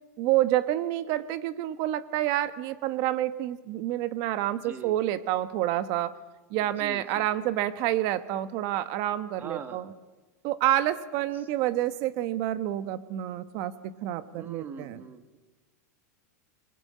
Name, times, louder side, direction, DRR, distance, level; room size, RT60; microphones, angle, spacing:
voice 1, 0.2-6.1 6.5-9.9 10.4-13.7 14.0-15.0, right 13 dB, 40° right, 13 dB, 1.3 m, -28 dB
voice 2, 4.6-5.0 6.8-7.3 9.4-9.9 14.4-15.4, right 6 dB, 20° right, 9 dB, 1.8 m, -41 dB
27.5 x 21.0 x 8.6 m, 1.2 s
supercardioid pair, 155°, 9 cm